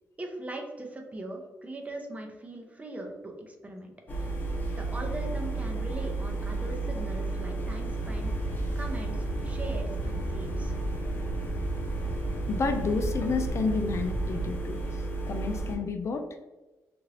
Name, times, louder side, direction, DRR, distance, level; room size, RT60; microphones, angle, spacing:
voice 1, 0.2-3.9 4.2-4.3 4.8-10.7, right 1 dB, 25° right, 2 dB, 0.6 m, -40 dB
sound 1, 4.1-15.8, right 2 dB, 30° left, 0.8 m, -33 dB
sound 2, 7.9-14.6, equal, 80° right, 0.5 m, -36 dB
voice 2, 12.5-16.3, left 4 dB, 50° left, 6 dB, 0.3 m, -30 dB
2.7 x 2.5 x 3.1 m, 1.1 s
cardioid pair, 90°, 6 cm